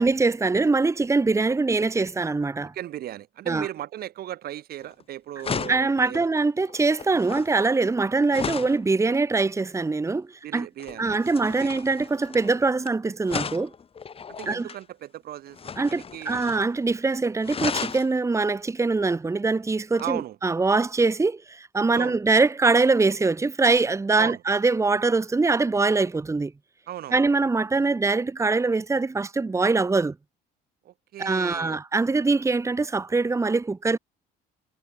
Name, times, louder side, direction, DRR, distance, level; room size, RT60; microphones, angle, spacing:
voice 1, 0.0-2.7 3.5-3.6 5.7-10.7 11.0-13.7 14.5-14.7 15.8-26.5 27.1-30.2 31.2-34.0, right 3 dB, 15° right, 1.7 m, -23 dB
voice 2, 2.7-6.3 10.4-11.1 11.6-11.8 14.3-15.6 15.9-16.5 20.0-20.4 21.9-22.2 24.2-24.4 26.9-27.2 30.8-31.8, right 12 dB, 65° right, 3.2 m, -36 dB
sound 1, 4.8-5.0 5.4-8.8 10.8-12.9 13.2-14.8 15.5-16.7 17.0-17.1 17.4-18.1 19.9-20.1, left 6 dB, 35° left, 2.5 m, -35 dB
cardioid pair, 110°, 17 cm